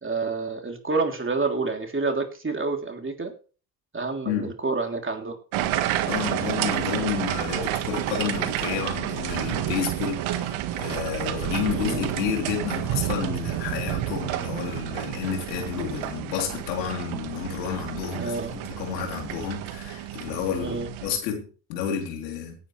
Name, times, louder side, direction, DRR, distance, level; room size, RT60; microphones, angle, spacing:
voice 1, 0.0-3.3 3.9-5.4 6.1-6.4 11.7-12.2 18.1-18.5 20.6-20.9, right 3 dB, 25° right, 3.5 m, -29 dB
sound 1, 5.5-21.2, right 12 dB, 70° right, 1.7 m, -30 dB
voice 2, 6.0-22.6, left 7 dB, 90° left, 3.9 m, -30 dB
17.5 x 10.0 x 3.4 m
hypercardioid pair, 55°, 48 cm